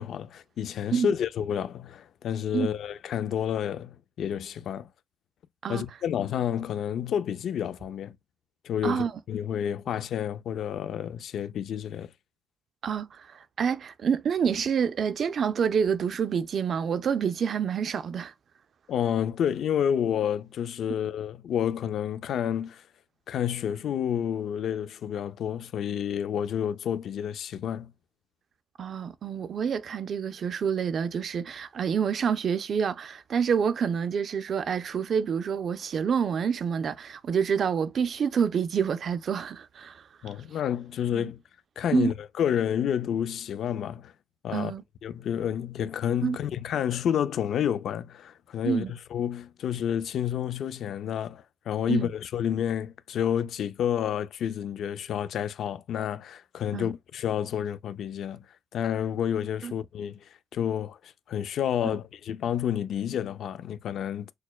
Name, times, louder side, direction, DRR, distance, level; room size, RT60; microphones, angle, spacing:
voice 1, 0.0-4.9 5.7-8.1 8.6-12.1 18.9-22.8 23.3-27.9 40.2-41.4 41.8-44.1 44.4-44.7 45.0-58.4 58.7-60.2 60.5-64.3, left 9 dB, 65° left, 0.3 m, -30 dB
voice 2, 12.8-18.3 28.8-40.0 41.1-41.3 41.9-42.1 44.5-44.8 46.2-46.4 48.6-48.9 51.9-52.1 56.7-56.9 59.6-59.7, right 7 dB, 50° right, 0.3 m, -27 dB
6.2 x 2.1 x 2.2 m
cardioid pair, 145°, 0 cm